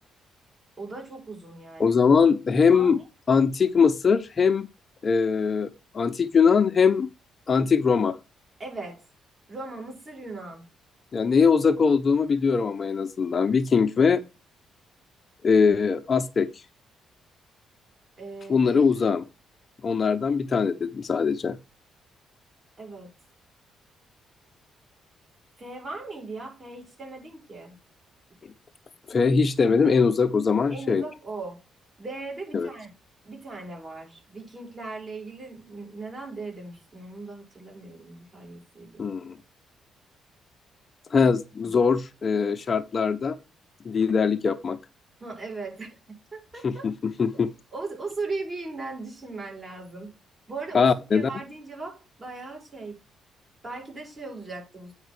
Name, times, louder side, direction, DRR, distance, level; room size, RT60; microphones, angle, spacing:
voice 1, 0.8-2.0 2.7-3.1 8.6-9.0 9.5-10.6 18.2-18.7 22.8-23.1 25.6-27.7 30.7-31.6 32.0-32.9 33.2-39.1 45.2-46.9 47.3-47.4 47.7-50.1 50.5-53.0 53.6-54.9, right 3 dB, 35° right, 6.5 m, -38 dB
voice 2, 1.8-3.0 3.3-4.7 5.0-5.7 5.9-7.1 7.5-8.2 11.1-14.2 15.4-16.5 18.5-19.2 19.8-21.6 29.1-31.0 32.5-32.7 39.0-39.4 41.1-43.4 43.9-44.8 46.6-47.5 50.7-51.3, left 5 dB, 40° left, 0.7 m, -21 dB
9.2 x 5.3 x 4.8 m
cardioid pair, 90°, 0 cm